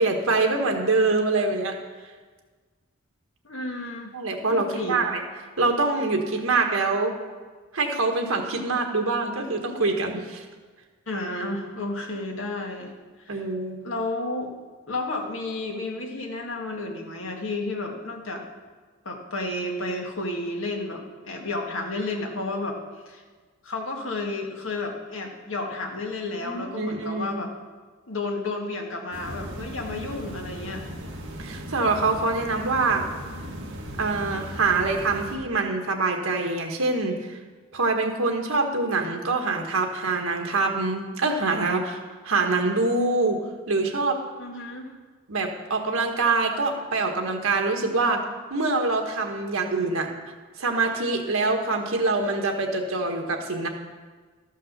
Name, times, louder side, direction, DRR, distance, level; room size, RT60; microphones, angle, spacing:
voice 1, 0.0-1.8 4.1-5.2 5.6-7.1 7.7-10.4 13.3-13.8 26.4-27.4 29.9-30.0 31.4-33.0 34.0-37.4 37.7-43.4 43.7-44.2 45.3-48.2 48.5-50.1 50.6-53.7, right 3 dB, 85° right, 3 dB, 1.5 m, -25 dB
voice 2, 3.4-4.1 4.5-5.0 11.1-12.9 13.2-13.4 13.8-14.5 14.9-18.4 19.0-22.8 23.0-23.2 23.6-27.5 28.1-30.9 44.4-44.9, left 2 dB, 70° left, 1 dB, 1.8 m, -32 dB
sound 1, 29.1-35.4, equal, 65° right, 1.7 m, -37 dB
13.0 x 5.6 x 6.7 m, 1.4 s
head